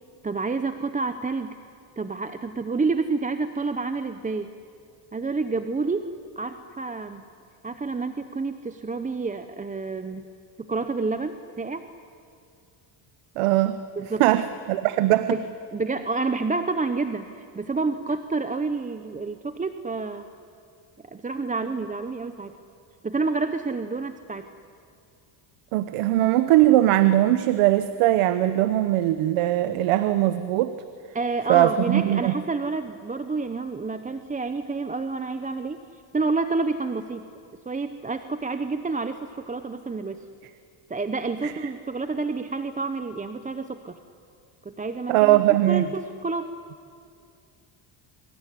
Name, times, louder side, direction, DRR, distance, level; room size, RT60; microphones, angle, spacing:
voice 1, 0.2-1.5 2.0-4.5 5.1-7.3 7.6-10.3 10.7-11.8 13.9-14.2 15.3-15.4 15.7-20.3 21.1-22.6 23.0-24.5 31.1-37.3 37.7-40.2 40.9-44.0 44.6-45.4 45.7-46.5, right 3 dB, 15° right, 9 dB, 0.8 m, -29 dB
voice 2, 13.4-13.8 14.2-15.3 25.7-30.7 31.5-32.3 41.4-41.5 45.1-45.9, right 14 dB, 85° right, 12 dB, 1.1 m, -20 dB
24.5 x 24.0 x 10.0 m, 2.3 s
cardioid pair, 125°, 50 cm